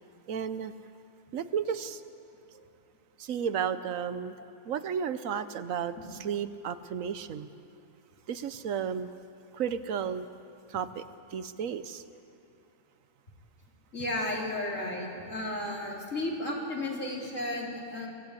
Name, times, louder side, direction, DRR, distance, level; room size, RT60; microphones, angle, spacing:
voice 1, 0.3-0.7 1.3-2.0 3.2-4.4 4.7-7.5 8.3-9.1 9.5-10.3 10.7-11.0 11.3-12.0, right 7 dB, 80° right, 12 dB, 1.2 m, -33 dB
voice 2, 13.9-18.1, left 1 dB, 70° left, -2 dB, 3.8 m, -33 dB
25.0 x 15.5 x 8.3 m, 2.5 s
omnidirectional pair, 1.4 m